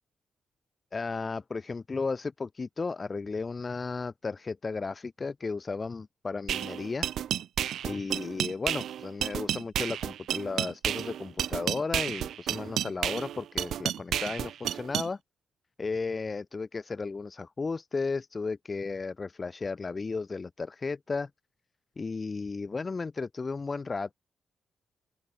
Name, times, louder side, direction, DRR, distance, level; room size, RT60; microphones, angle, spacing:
voice 1, 0.9-7.1 7.8-15.2 15.8-21.3 22.0-24.1, left 4 dB, 25° left, 1.2 m, -34 dB
sound 1, 6.5-15.1, right 10 dB, 70° right, 3.0 m, -31 dB
open air
wide cardioid pair, 165°, 0 cm